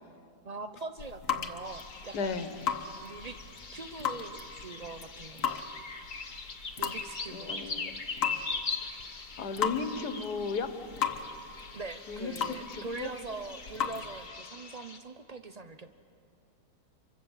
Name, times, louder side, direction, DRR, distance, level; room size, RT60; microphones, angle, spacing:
voice 1, 0.4-2.5 3.0-3.4 3.7-5.6 6.8-7.9 11.7-15.9, right 3 dB, 40° right, 9 dB, 0.5 m, -42 dB
sound 1, 0.8-14.3, left 7 dB, 55° left, 1.4 m, -37 dB
sound 2, 1.6-15.0, left 4 dB, 35° left, 1.2 m, -41 dB
voice 2, 2.1-2.5 7.3-8.0 9.4-10.7 12.1-13.1, left 5 dB, 80° left, 10 dB, 1.8 m, -35 dB
26.0 x 24.0 x 7.3 m, 3.0 s
omnidirectional pair, 1.7 m